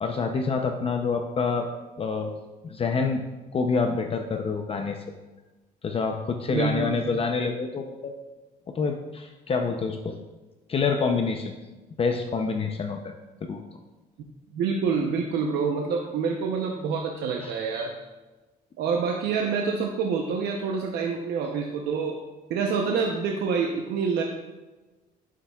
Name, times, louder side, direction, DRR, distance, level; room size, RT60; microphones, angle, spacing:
voice 1, 0.0-1.7 2.0-2.3 2.6-3.2 3.5-5.0 5.8-8.1 8.8-10.2 10.7-11.6 12.0-13.1 13.5-13.6 17.4-17.5, left 4 dB, 35° left, 5 dB, 0.6 m, -27 dB
voice 2, 6.5-7.1 14.5-17.9 18.8-22.2 22.5-24.2, right 5 dB, 80° right, 1 dB, 0.8 m, -27 dB
11.0 x 6.8 x 2.4 m, 1.2 s
cardioid pair, 110°, 17 cm